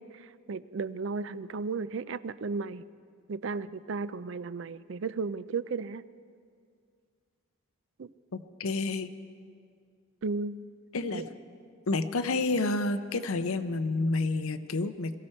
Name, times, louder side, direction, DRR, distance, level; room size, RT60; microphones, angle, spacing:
voice 1, 0.0-2.9 3.3-6.0 8.0-8.1 10.2-10.6 11.1-11.3, right 4 dB, 60° right, 16 dB, 0.4 m, -34 dB
voice 2, 8.3-9.1 10.9-11.3 11.9-15.2, left 3 dB, 80° left, 10 dB, 0.7 m, -29 dB
22.0 x 14.5 x 4.4 m, 2.2 s
head